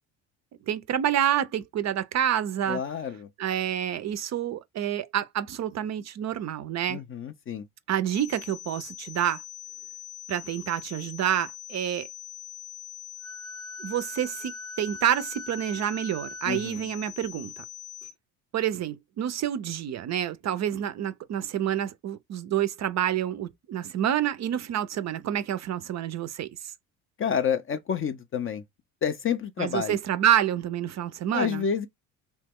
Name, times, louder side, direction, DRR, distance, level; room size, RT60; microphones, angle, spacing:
voice 1, 0.7-2.8 3.4-7.0 7.9-9.4 10.3-12.1 13.8-17.6 18.5-26.7 29.6-31.6, right 10 dB, 40° right, 0.4 m, -28 dB
voice 2, 2.7-3.3 6.9-7.7 16.5-16.8 27.2-28.6 29.0-30.0 31.3-31.9, left 7 dB, 30° left, 0.4 m, -29 dB
sound 1, 8.1-18.1, left 10 dB, 70° left, 0.8 m, -43 dB
Wind instrument woodwind instrument, 13.2-16.7, equal, ahead, 0.8 m, -42 dB
3.0 x 2.1 x 3.4 m
hypercardioid pair, 60°, 45 cm